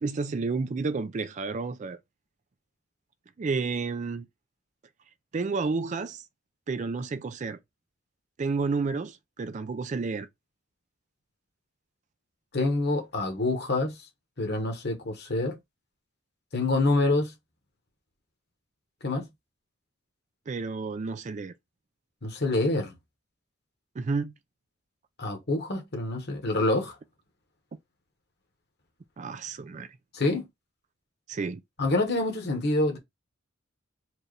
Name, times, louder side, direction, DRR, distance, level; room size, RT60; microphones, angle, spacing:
voice 1, 0.0-2.0 3.4-4.3 5.3-6.2 6.7-7.6 8.4-10.3 20.5-21.5 24.0-24.3 29.2-29.9 31.3-31.6, right 4 dB, 35° right, 0.4 m, -31 dB
voice 2, 12.5-14.0 14.4-15.6 16.5-17.3 19.0-19.3 22.2-22.9 25.2-26.9 30.1-30.5 31.8-33.0, left 2 dB, 55° left, 1.4 m, -26 dB
4.5 x 2.6 x 3.2 m
head